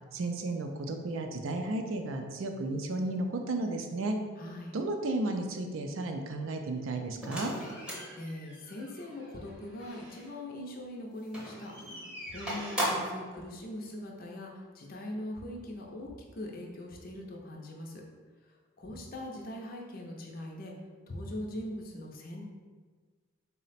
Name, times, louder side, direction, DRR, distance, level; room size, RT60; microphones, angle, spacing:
voice 1, 0.1-4.2 4.7-7.5, right 2 dB, 65° right, 5 dB, 0.4 m, -33 dB
voice 2, 4.4-4.7 8.2-18.0 18.8-20.7 21.1-22.4, left 1 dB, 40° left, 0 dB, 0.5 m, -41 dB
sound 1, 7.2-10.3 11.2-13.2, right 1 dB, 5° right, 0.7 m, -38 dB
3.9 x 2.1 x 4.0 m, 1.5 s
head